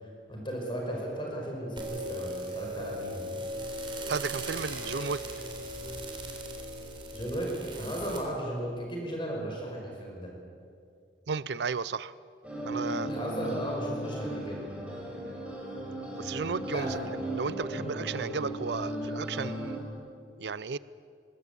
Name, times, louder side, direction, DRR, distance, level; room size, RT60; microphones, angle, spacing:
voice 1, 0.0-3.3 7.1-10.3 13.1-14.6 16.7-16.9, right 1 dB, 25° left, -1 dB, 5.4 m, -35 dB
sound 1, 1.8-8.2, right 1 dB, 25° right, 3.7 m, -38 dB
voice 2, 4.1-5.2 11.3-12.1 12.7-13.1 16.2-17.0 17.3-19.8 20.4-20.8, right 5 dB, 70° right, 18 dB, 0.5 m, -33 dB
sound 2, 12.4-19.8, right 1 dB, 5° right, 6.1 m, -36 dB
24.5 x 20.5 x 8.5 m, 2.4 s
head